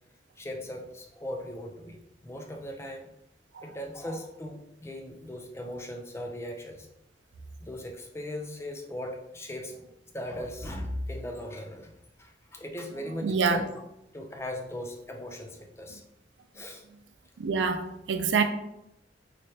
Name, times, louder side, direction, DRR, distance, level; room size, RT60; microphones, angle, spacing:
voice 1, 0.4-2.0 2.2-3.1 3.6-6.9 7.6-9.7 10.1-11.9 12.2-13.7 14.1-16.0 16.5-16.8, left 1 dB, 15° left, 0.5 m, -38 dB
voice 2, 13.2-13.7 17.4-18.4, right 5 dB, 90° right, 0.4 m, -26 dB
3.3 x 3.2 x 2.8 m
head